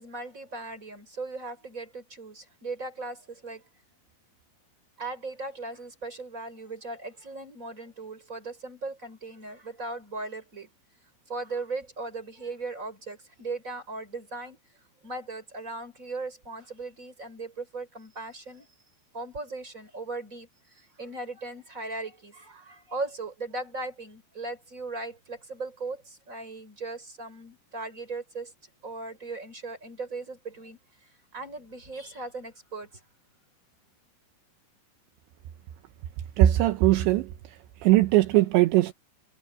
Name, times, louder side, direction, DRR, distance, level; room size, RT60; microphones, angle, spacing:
voice 1, 0.0-3.6 5.0-10.7 11.3-14.6 15.0-18.7 19.1-28.5 28.8-30.8 31.3-32.9, right 3 dB, 15° right, 4.6 m, -38 dB
voice 2, 36.4-37.3 37.8-38.9, right 15 dB, 80° right, 3.2 m, -20 dB
omnidirectional pair, 5.3 m